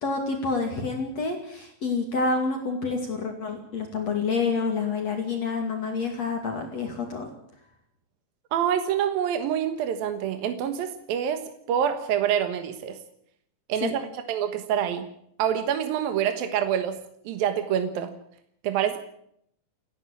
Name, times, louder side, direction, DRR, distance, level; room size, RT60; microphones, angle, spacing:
voice 1, 0.0-7.3 13.8-13.9, left 4 dB, 50° left, 3 dB, 3.3 m, -28 dB
voice 2, 8.5-13.0 13.7-15.1 15.4-17.0 17.2-18.1 18.6-19.0, right 9 dB, 75° right, 8 dB, 3.1 m, -26 dB
29.5 x 11.0 x 8.6 m, 0.72 s
omnidirectional pair, 4.3 m